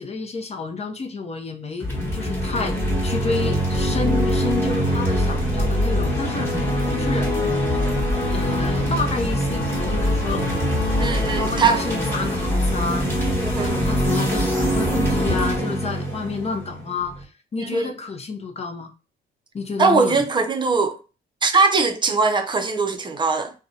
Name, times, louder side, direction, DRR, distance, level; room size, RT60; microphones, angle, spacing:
voice 1, 0.0-6.5 6.9-7.3 8.3-10.4 11.3-13.0 13.5-17.3 17.5-18.9 19.5-20.2, left 4 dB, 30° left, 0.6 m, -29 dB
sound 1, 1.8-17.2, equal, 10° left, 1.2 m, -23 dB
voice 2, 11.0-11.8 13.4-13.7 17.6-17.9 19.8-21.0 21.4-23.5, right 4 dB, 25° right, 0.5 m, -20 dB
2.5 x 2.2 x 2.7 m
cardioid pair, 90°, 20 cm